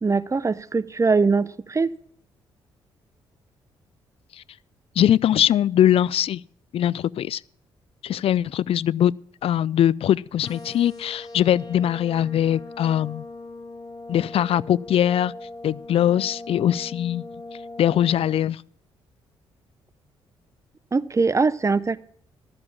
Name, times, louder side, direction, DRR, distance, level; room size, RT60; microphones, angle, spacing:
voice 1, 0.0-1.9 20.9-22.0, right 4 dB, 25° right, 0.7 m, -22 dB
voice 2, 5.0-6.4 6.7-7.4 8.0-9.1 9.4-13.2 14.1-15.3 15.6-17.2 17.8-18.6, left 11 dB, 60° left, 0.4 m, -21 dB
sound 1, 10.4-18.4, left 2 dB, 35° left, 2.3 m, -40 dB
13.0 x 6.9 x 7.0 m
supercardioid pair, 50°, 11 cm